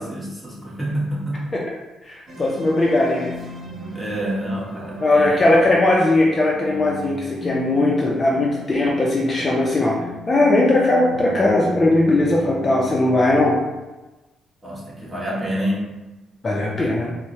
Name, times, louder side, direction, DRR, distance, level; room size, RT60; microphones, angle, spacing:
voice 1, 0.0-1.5 3.9-5.6 14.6-15.8, equal, 10° right, -6 dB, 1.3 m, -28 dB
voice 2, 2.1-3.3 5.0-10.0 10.3-13.6 16.4-17.1, left 2 dB, 30° left, -3 dB, 0.5 m, -18 dB
sound 1, 2.3-13.6, equal, 40° right, 0.9 m, -37 dB
4.4 x 2.1 x 2.8 m, 1.1 s
cardioid pair, 90°, 0 cm